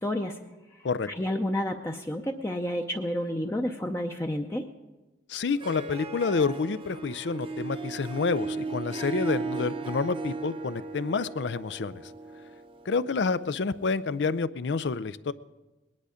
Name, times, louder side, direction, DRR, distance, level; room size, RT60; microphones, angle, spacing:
voice 1, 0.0-0.4 1.1-4.7, left 1 dB, 15° left, 2 dB, 0.6 m, -30 dB
voice 2, 5.3-12.1 12.9-15.3, left 4 dB, 80° left, 15 dB, 0.5 m, -28 dB
Harp, 5.4-14.0, right 3 dB, 30° right, 0.8 m, -37 dB
20.0 x 11.0 x 5.0 m, 1.1 s
head